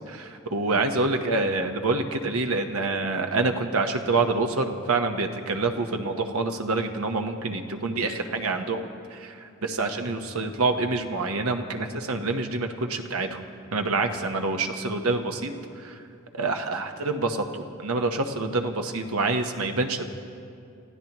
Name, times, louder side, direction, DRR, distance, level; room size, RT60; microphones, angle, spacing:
voice 1, 0.1-16.0 16.3-20.0, right 3 dB, 85° right, 5 dB, 1.1 m, -27 dB
30.0 x 15.5 x 3.0 m, 2.5 s
head